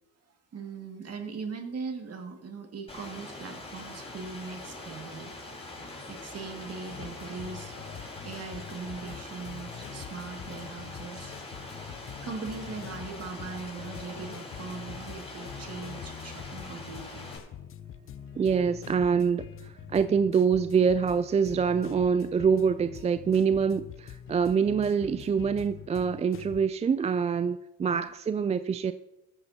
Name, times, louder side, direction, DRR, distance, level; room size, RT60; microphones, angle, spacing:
voice 1, 0.5-5.3 5.6-11.4 12.2-17.3 27.9-28.1, right 4 dB, 40° right, 2.1 m, -40 dB
Rain, 2.9-17.4, left 2 dB, 15° left, 4.5 m, -43 dB
sound 1, 6.9-26.7, left 10 dB, 35° left, 0.5 m, -45 dB
voice 2, 18.3-28.9, right 6 dB, 20° right, 0.3 m, -25 dB
15.0 x 13.5 x 2.8 m
supercardioid pair, 75°, 37 cm